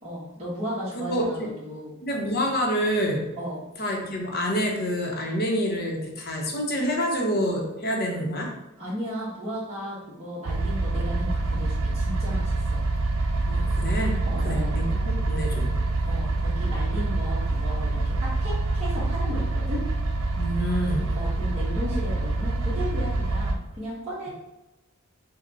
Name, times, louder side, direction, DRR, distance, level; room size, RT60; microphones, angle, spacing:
voice 1, 0.0-1.9 3.4-3.6 8.8-12.8 14.2-14.7 16.0-19.8 21.1-24.3, equal, 30° right, -9 dB, 1.3 m, -35 dB
voice 2, 0.9-1.5 2.0-3.3 3.8-8.5 13.5-15.7 20.4-21.1, equal, 45° left, 0 dB, 0.9 m, -27 dB
sound 1, 10.4-23.5, right 2 dB, 75° right, 0.6 m, -26 dB
5.2 x 2.3 x 4.0 m, 1.0 s
head